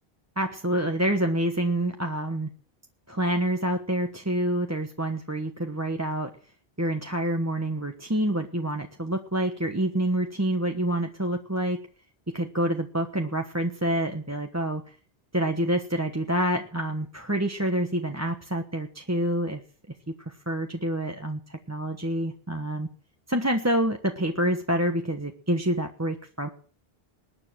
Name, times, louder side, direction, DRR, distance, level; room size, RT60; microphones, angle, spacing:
voice 1, 0.4-2.5 3.1-6.3 6.8-11.8 12.3-14.9 15.3-19.6 20.1-22.9 23.3-26.5, right 1 dB, 15° right, 4 dB, 1.2 m, -27 dB
21.0 x 9.8 x 6.2 m, 0.43 s
omnidirectional pair, 1.0 m